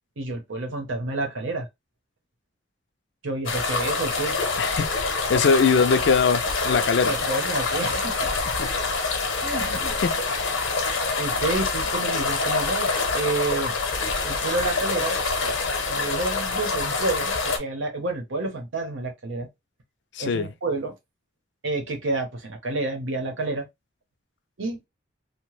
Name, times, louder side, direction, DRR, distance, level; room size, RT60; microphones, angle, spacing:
voice 1, 0.2-1.7 3.2-4.4 7.0-8.3 9.4-9.9 11.2-13.7 14.2-15.5 15.9-19.5 20.2-20.9 21.6-23.6 24.6-24.8, right 3 dB, 85° right, 0.9 m, -29 dB
sound 1, 3.5-17.6, left 4 dB, 85° left, 0.8 m, -26 dB
voice 2, 4.6-7.4 8.6-8.7 9.6-10.6 20.1-20.5, left 5 dB, 65° left, 0.4 m, -23 dB
2.9 x 2.1 x 3.1 m
head